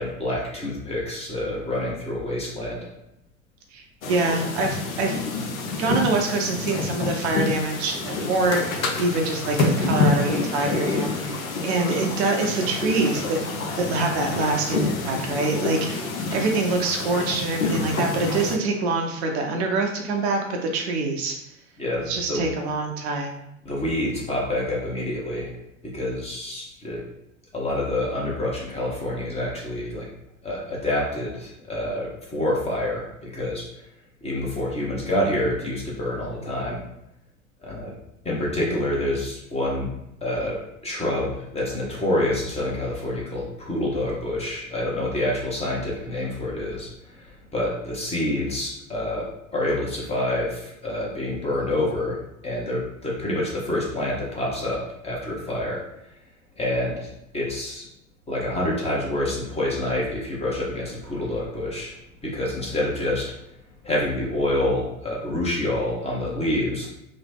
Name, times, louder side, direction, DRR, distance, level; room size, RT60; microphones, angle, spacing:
voice 1, 0.0-2.9 21.8-22.5 23.6-25.5 25.8-27.0 27.5-30.1 30.4-33.7 34.2-36.8 37.6-37.9 38.2-39.9 40.2-52.2 52.4-55.8 56.6-57.9 58.3-62.0 62.2-63.3 63.8-66.9, left 1 dB, 15° left, -3 dB, 0.8 m, -27 dB
voice 2, 3.7-5.2 5.8-21.4 22.0-23.4, right 3 dB, 55° right, 2 dB, 0.5 m, -25 dB
sound 1, 4.0-18.6, left 3 dB, 80° left, 0.6 m, -27 dB
3.0 x 2.0 x 3.3 m, 0.84 s
figure-of-eight pair, 80°, 41 cm